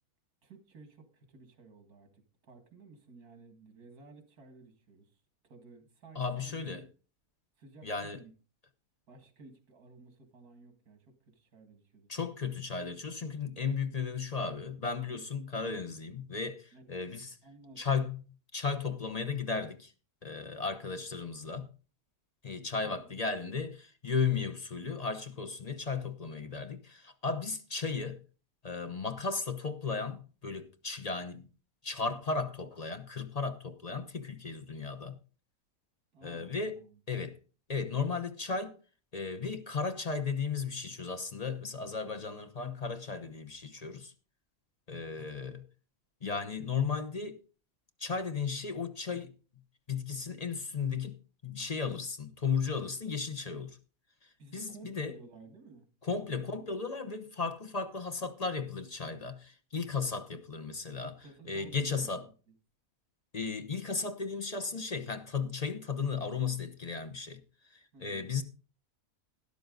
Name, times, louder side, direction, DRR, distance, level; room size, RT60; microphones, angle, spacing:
voice 1, 0.4-6.9 7.6-8.3 9.1-12.3 16.7-16.9 17.4-17.8 22.8-23.2 36.1-37.0 54.4-55.9 61.0-62.3 67.9-68.3, right 3 dB, 80° right, 2.5 m, -54 dB
voice 2, 6.1-6.8 7.8-8.2 12.1-17.4 17.8-18.2 18.5-19.9 20.2-21.7 22.4-28.2 28.6-31.4 31.8-35.2 36.2-36.8 37.1-37.4 37.7-38.7 39.1-44.1 44.9-45.6 46.2-47.4 48.0-49.3 49.9-51.2 51.4-53.8 54.5-55.1 56.0-61.2 61.5-62.2 63.3-67.4 67.7-68.4, left 5 dB, 30° left, 0.8 m, -35 dB
12.5 x 11.0 x 3.9 m
omnidirectional pair, 1.6 m